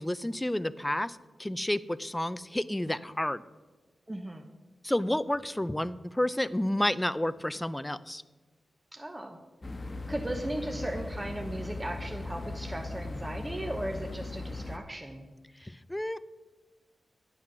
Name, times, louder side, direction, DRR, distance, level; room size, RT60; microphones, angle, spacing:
voice 1, 0.0-3.4 4.8-8.2 15.6-16.2, left 1 dB, 10° left, 16 dB, 0.4 m, -30 dB
voice 2, 4.1-4.5 8.9-9.4 10.1-15.3, right 1 dB, 20° right, 4 dB, 0.9 m, -37 dB
sound 1, 9.6-14.8, left 2 dB, 35° left, 1.1 m, -38 dB
11.0 x 7.3 x 6.2 m, 1.2 s
cardioid pair, 75°, 0 cm